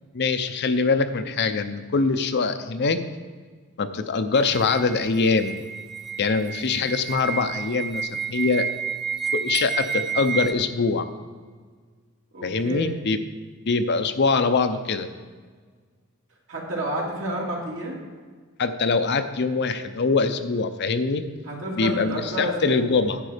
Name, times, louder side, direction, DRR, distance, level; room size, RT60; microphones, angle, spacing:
voice 1, 0.1-3.0 3.8-5.5 6.2-8.7 9.3-11.1 12.4-13.2 13.7-15.1 18.6-21.2 21.8-23.2, left 4 dB, 55° left, 9 dB, 0.6 m, -23 dB
Tibetan Singing Bowls Improv, 4.3-10.5, right 7 dB, ahead, 0.4 m, -30 dB
voice 2, 12.3-12.9 16.5-18.0 21.4-22.8, right 1 dB, 65° right, -3 dB, 2.7 m, -30 dB
10.5 x 7.9 x 5.0 m, 1.5 s
head